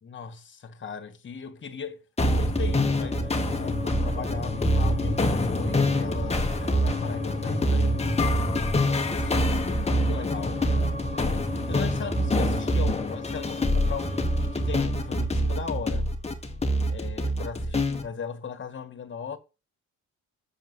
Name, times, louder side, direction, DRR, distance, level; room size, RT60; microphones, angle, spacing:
voice 1, 0.0-8.1 8.8-16.1 16.9-19.4, left 6 dB, 40° left, 1.9 m, -38 dB
sound 1, 2.2-18.1, left 1 dB, 20° left, 1.6 m, -25 dB
7.6 x 6.6 x 8.1 m
cardioid pair, 90°, 30 cm